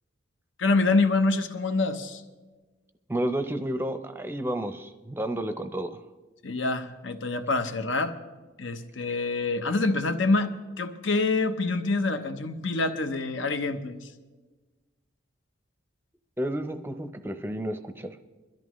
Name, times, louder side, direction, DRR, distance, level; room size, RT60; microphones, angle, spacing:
voice 1, 0.6-2.2 6.4-8.2 8.6-10.5 10.8-14.1, left 3 dB, 75° left, 8 dB, 0.9 m, -26 dB
voice 2, 3.1-6.0 16.4-18.2, right 1 dB, 10° right, 8 dB, 0.6 m, -31 dB
22.0 x 13.5 x 3.1 m, 1.3 s
head